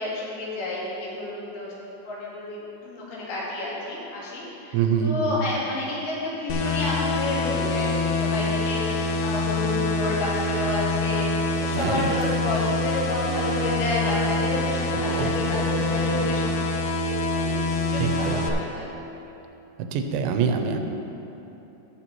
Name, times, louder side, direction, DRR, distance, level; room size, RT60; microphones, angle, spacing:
voice 1, 0.0-4.8 5.0-11.3 11.6-16.7 17.0-18.9, left 2 dB, 70° left, -6 dB, 3.6 m, -30 dB
voice 2, 4.7-5.5 11.7-12.1 14.9-15.3 18.0-18.4 19.8-20.8, right 6 dB, 90° right, 5 dB, 3.0 m, -25 dB
sound 1, 6.5-18.5, left 2 dB, 85° left, 2.3 m, -26 dB
sound 2, 11.3-16.3, right 4 dB, 70° right, 1.9 m, -37 dB
16.0 x 7.4 x 3.1 m, 3.0 s
omnidirectional pair, 5.0 m